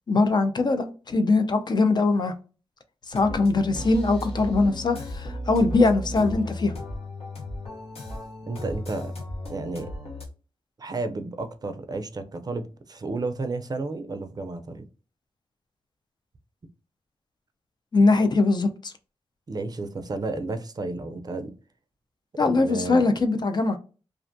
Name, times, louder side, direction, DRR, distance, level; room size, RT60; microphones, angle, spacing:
voice 1, 0.1-2.3 3.1-6.7 17.9-18.9 22.4-23.8, left 3 dB, 45° left, 0.4 m, -22 dB
sound 1, 3.1-10.3, left 1 dB, 80° left, 0.9 m, -35 dB
voice 2, 8.5-9.1 9.5-9.9 10.8-14.8 19.5-21.5 22.4-23.0, right 3 dB, 40° right, 0.4 m, -32 dB
2.4 x 2.2 x 2.5 m
cardioid pair, 70°, 10 cm